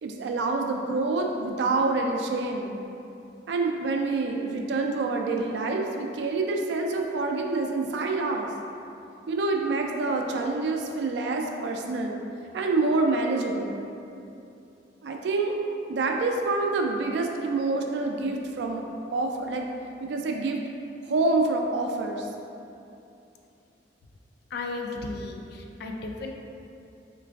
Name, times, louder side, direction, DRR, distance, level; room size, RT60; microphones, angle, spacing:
voice 1, 0.0-2.7 3.5-8.5 9.3-12.2 12.5-13.8 15.0-15.6 15.9-18.8 19.1-19.7 20.0-20.6 21.1-22.3, right 3 dB, 70° right, 2 dB, 0.3 m, -27 dB
voice 2, 24.5-26.3, left 3 dB, 60° left, 2 dB, 0.3 m, -34 dB
3.8 x 3.3 x 2.3 m, 2.7 s
head